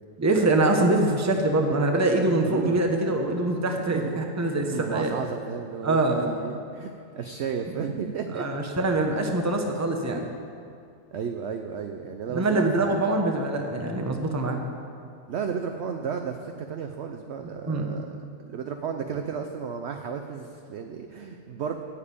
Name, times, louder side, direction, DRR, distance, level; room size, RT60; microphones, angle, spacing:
voice 1, 0.2-5.1 5.8-6.2 8.3-10.2 12.3-14.6 17.4-17.9, right 2 dB, 15° right, 3 dB, 0.7 m, -24 dB
voice 2, 2.4-2.9 3.9-8.6 11.1-13.1 15.3-18.2 18.5-21.7, right 6 dB, 65° right, 5 dB, 0.7 m, -33 dB
8.8 x 7.3 x 8.5 m, 2.5 s
omnidirectional pair, 1.7 m